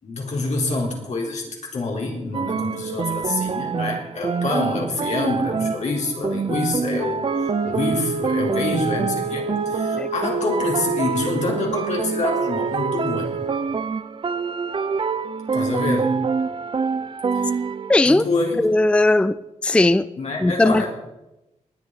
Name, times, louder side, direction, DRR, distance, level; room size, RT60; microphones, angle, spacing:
voice 1, 0.0-13.4 15.5-16.2 17.3-17.5 18.1-18.6 20.2-20.9, left 3 dB, 75° left, -1 dB, 3.9 m, -26 dB
sound 1, 2.3-17.9, right 5 dB, 45° right, 0.6 m, -26 dB
Wind instrument woodwind instrument, 7.2-13.7, right 4 dB, 90° right, 0.9 m, -30 dB
voice 2, 17.9-18.2 18.6-19.3 19.6-20.1 20.4-20.8, left 2 dB, 10° left, 14 dB, 0.4 m, -17 dB
19.5 x 9.2 x 4.7 m, 0.95 s
cardioid pair, 80°, 12 cm